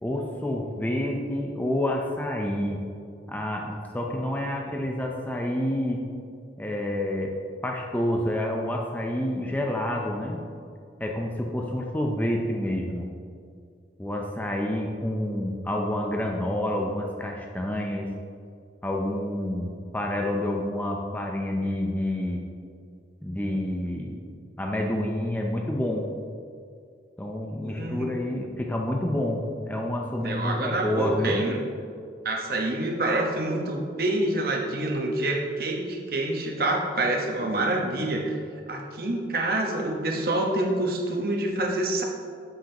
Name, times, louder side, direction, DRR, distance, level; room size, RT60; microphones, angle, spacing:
voice 1, 0.0-2.8 3.3-6.1 6.6-10.4 11.0-13.1 14.0-18.1 18.8-22.4 23.2-24.2 24.6-26.1 27.2-31.4, left 1 dB, 10° left, 0 dB, 0.5 m, -28 dB
voice 2, 27.6-28.1 30.2-31.6 32.2-38.4 38.7-42.0, right 2 dB, 55° right, 0 dB, 1.1 m, -27 dB
8.9 x 7.5 x 2.9 m, 2.3 s
head